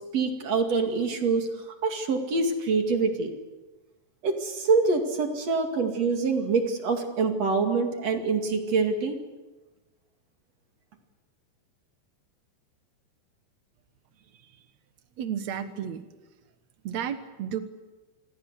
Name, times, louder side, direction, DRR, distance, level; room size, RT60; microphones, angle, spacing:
voice 1, 0.1-1.5 1.8-3.3 4.2-9.2, right 4 dB, 45° right, 5 dB, 2.8 m, -25 dB
voice 2, 15.2-16.0 16.8-17.6, right 9 dB, 85° right, 9 dB, 1.5 m, -32 dB
27.5 x 22.0 x 8.3 m, 1.2 s
omnidirectional pair, 5.2 m